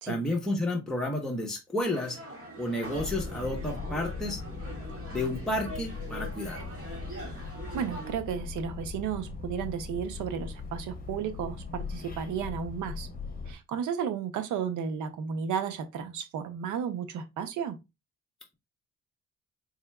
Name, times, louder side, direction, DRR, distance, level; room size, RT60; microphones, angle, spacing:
voice 1, 0.1-2.2 2.6-4.4 5.1-6.7, left 1 dB, ahead, 0.9 m, -31 dB
sound 1, 1.8-8.1, right 1 dB, 45° right, 1.9 m, -43 dB
sound 2, 2.9-13.5, left 4 dB, 30° left, 1.0 m, -39 dB
voice 2, 7.7-13.1 13.5-17.8, right 7 dB, 80° right, 0.7 m, -33 dB
4.3 x 3.5 x 2.2 m
cardioid pair, 90°, 30 cm